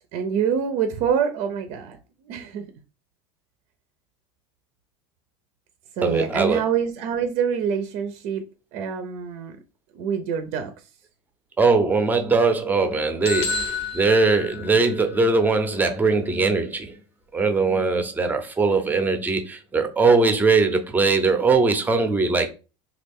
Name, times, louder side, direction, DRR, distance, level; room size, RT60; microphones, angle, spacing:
voice 1, 0.1-2.0 2.2-2.7 6.0-8.4 8.7-9.6 9.9-10.7, right 7 dB, 60° right, 0.5 m, -25 dB
voice 2, 6.0-6.6 11.6-16.9 17.3-22.5, right 4 dB, 15° right, 0.6 m, -20 dB
sound 1, 13.2-15.2, left 5 dB, 90° left, 1.0 m, -30 dB
3.1 x 2.4 x 3.5 m
supercardioid pair, 120°, 13 cm